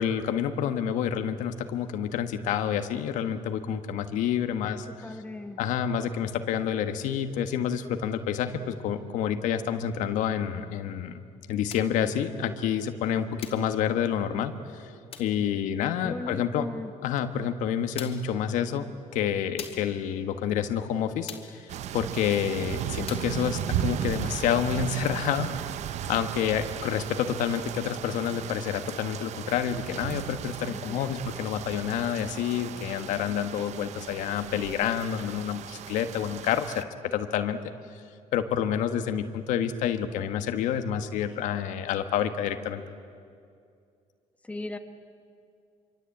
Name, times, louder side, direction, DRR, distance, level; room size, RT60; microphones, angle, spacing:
voice 1, 0.0-4.8 5.6-11.2 11.5-14.9 15.2-16.7 17.0-18.9 19.1-25.7 26.1-37.6 38.3-42.8, left 9 dB, 85° left, 8 dB, 1.6 m, -28 dB
voice 2, 4.6-5.6 16.0-16.9 30.7-31.3 44.4-44.8, left 2 dB, 10° left, 6 dB, 1.7 m, -38 dB
sound 1, 11.7-12.0 13.4-13.7 15.1-15.4 17.2-17.3 18.0-18.3 19.6-19.9 21.3-21.6 23.1-23.4, left 7 dB, 50° left, 2.8 m, -42 dB
sound 2, 21.7-36.8, right 11 dB, 65° right, 0.8 m, -36 dB
26.0 x 24.5 x 8.7 m, 2.3 s
cardioid pair, 120°, 13 cm